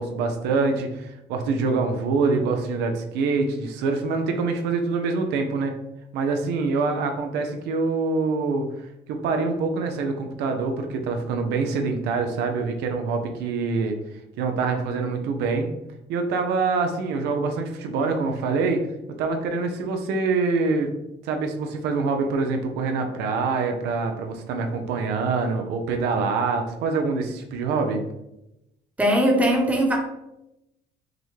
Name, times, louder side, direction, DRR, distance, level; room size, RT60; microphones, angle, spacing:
voice 1, 0.0-5.7 6.1-8.7 9.1-14.0 14.4-15.7 16.1-18.8 19.2-20.9 21.2-28.0, right 4 dB, 90° right, 4 dB, 0.6 m, -25 dB
voice 2, 29.0-30.0, equal, 10° right, 0 dB, 0.9 m, -20 dB
5.8 x 2.1 x 3.2 m, 0.88 s
cardioid pair, 110°, 17 cm